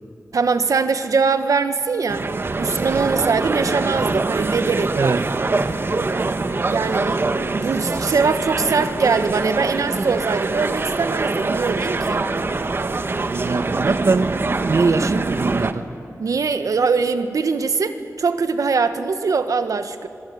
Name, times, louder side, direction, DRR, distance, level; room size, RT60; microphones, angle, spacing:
voice 1, 0.3-2.2 2.6-5.1 6.7-7.2 7.5-12.2 16.2-20.1, right 5 dB, 80° right, 9 dB, 1.6 m, -22 dB
sound 1, 2.1-15.7, right 3 dB, 40° right, 1.3 m, -24 dB
voice 2, 5.0-5.3 13.3-14.3 14.6-15.8, right 4 dB, 60° right, 12 dB, 1.1 m, -21 dB
26.0 x 24.0 x 9.6 m, 2.6 s
wide cardioid pair, 115°, 6 cm